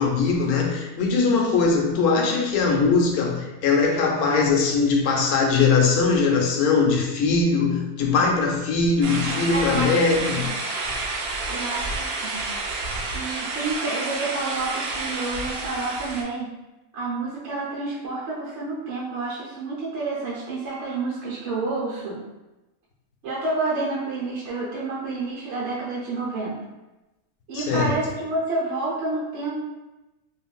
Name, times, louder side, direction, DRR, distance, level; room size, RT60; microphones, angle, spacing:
voice 1, 0.0-10.5 27.5-28.0, left 4 dB, 85° left, 0 dB, 1.1 m, -21 dB
sound 1, 9.0-16.2, right 3 dB, 85° right, 1.1 m, -29 dB
voice 2, 9.5-10.0 10.3-10.5 11.5-12.4 13.1-16.5 16.9-22.2 23.2-26.6 27.5-29.6, right 3 dB, 60° right, -6 dB, 0.9 m, -29 dB
3.0 x 2.5 x 2.3 m, 1.0 s
omnidirectional pair, 1.5 m